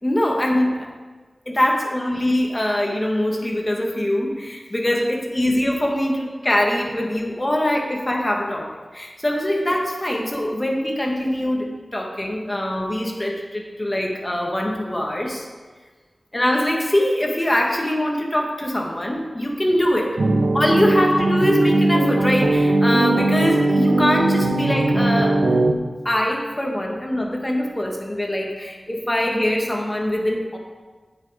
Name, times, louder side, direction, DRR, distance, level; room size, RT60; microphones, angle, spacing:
voice 1, 0.0-0.9 1.4-15.5 16.3-20.2 20.5-25.4 26.0-30.6, left 1 dB, 20° left, 0 dB, 1.7 m, -23 dB
sound 1, 20.2-25.7, right 2 dB, 80° right, 0.9 m, -19 dB
8.8 x 7.6 x 5.0 m, 1.4 s
wide cardioid pair, 85°, 0 cm